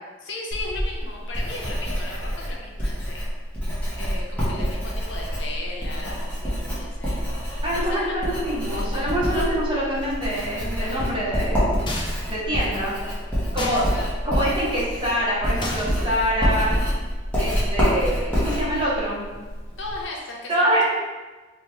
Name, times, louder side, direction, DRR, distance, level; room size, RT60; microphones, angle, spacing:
voice 1, 0.2-3.3 4.0-8.2 13.6-14.1 19.8-20.9, left 2 dB, 70° left, -1 dB, 0.7 m, -36 dB
Writing, 0.5-20.0, equal, 5° left, 1.1 m, -27 dB
voice 2, 7.6-11.6 12.3-13.0 13.5-13.8 14.2-16.8 17.4-19.3 20.5-20.9, equal, 30° right, -8 dB, 1.2 m, -25 dB
sound 1, 11.9-12.4 13.6-13.9 15.6-16.1, left 1 dB, 25° left, 0.5 m, -31 dB
3.1 x 3.0 x 3.5 m, 1.3 s
head